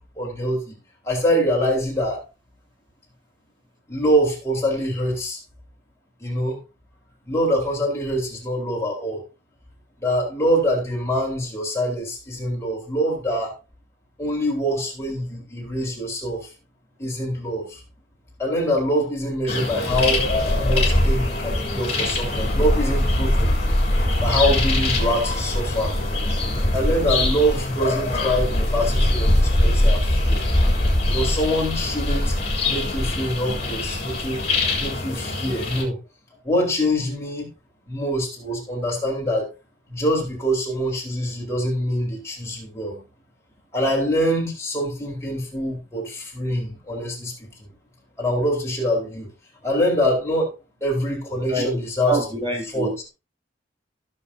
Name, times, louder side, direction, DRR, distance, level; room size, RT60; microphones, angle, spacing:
voice 1, 0.2-0.8 1.0-2.2 3.9-5.4 6.2-6.6 7.3-9.2 10.0-13.5 14.2-16.5 17.0-17.8 18.4-20.2 20.6-23.5 24.2-25.9 26.7-30.4 31.0-32.3 32.6-34.4 34.8-36.0 36.4-37.5 37.9-39.5 39.9-43.0 43.7-47.7 48.2-49.3 49.6-50.5 50.8-52.2 52.7-52.9, equal, 15° left, 4.4 m, -24 dB
sound 1, 19.5-35.8, left 1 dB, 35° left, 3.5 m, -22 dB
voice 2, 51.5-53.1, right 2 dB, 30° right, 2.6 m, -27 dB
16.5 x 6.8 x 2.8 m
head